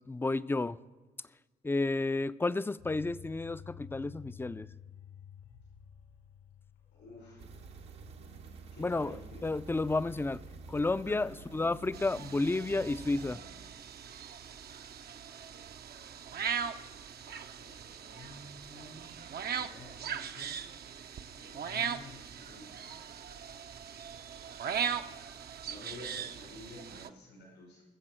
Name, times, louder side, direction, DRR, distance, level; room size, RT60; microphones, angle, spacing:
voice 1, 0.1-0.8 1.6-4.7 8.8-10.4 10.7-13.4, left 2 dB, 10° left, 0.4 m, -31 dB
sound 1, 2.8-13.7, left 8 dB, 70° left, 1.3 m, -54 dB
voice 2, 6.9-7.4 8.7-9.5 11.0-11.3 17.6-20.5 21.3-23.0 23.3-23.9 25.6-27.8, left 2 dB, 90° left, 4.6 m, -51 dB
sound 2, 7.4-13.3, right 4 dB, 80° right, 1.2 m, -49 dB
sound 3, 11.9-27.1, right 7 dB, 60° right, 0.7 m, -39 dB
21.5 x 7.4 x 4.5 m
hypercardioid pair, 50°, 18 cm